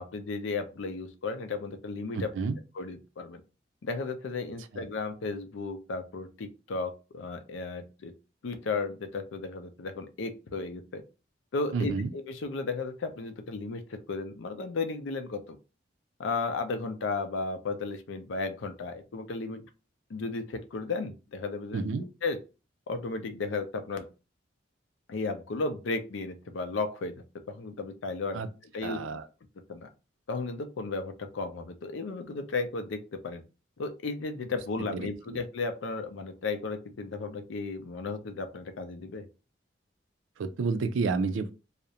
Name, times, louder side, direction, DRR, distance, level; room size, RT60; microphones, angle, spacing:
voice 1, 0.0-2.3 2.8-3.4 3.8-8.1 8.4-11.0 11.5-15.6 16.2-19.6 20.1-21.9 22.2-22.4 22.9-24.1 25.1-27.1 27.5-28.4 28.7-29.0 29.7-29.9 30.3-33.4 33.8-39.3, left 3 dB, 80° left, 0.4 m, -34 dB
voice 2, 2.1-2.6 4.7-4.9 11.7-12.1 21.7-22.1 28.3-28.5 28.8-29.3 34.9-35.4 40.4-41.5, right 4 dB, 85° right, 0.3 m, -30 dB
2.4 x 2.1 x 2.7 m
head